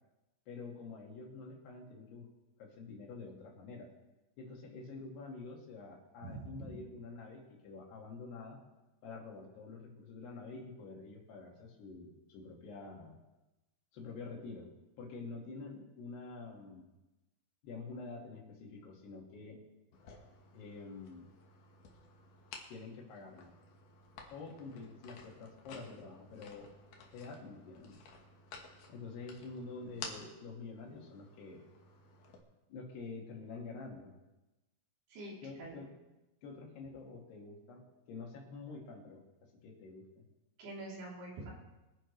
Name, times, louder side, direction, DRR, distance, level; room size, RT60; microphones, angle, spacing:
voice 1, 0.5-2.3 2.6-3.9 4.4-8.6 9.0-13.2 13.9-14.7 15.0-16.9 17.6-19.6 20.5-21.3 22.7-23.5 24.3-26.7 27.1-28.0 28.9-31.6 32.7-34.1 35.4-35.9 36.4-37.8 38.1-40.2, left 4 dB, 85° left, 0 dB, 4.2 m, -47 dB
voice 2, 6.2-6.7 35.1-35.9 40.6-41.5, right 2 dB, 70° right, -5 dB, 5.4 m, -46 dB
sound 1, 19.9-32.4, left 4 dB, 60° left, 2.8 m, -54 dB
23.0 x 10.0 x 3.3 m, 1.0 s
omnidirectional pair, 4.6 m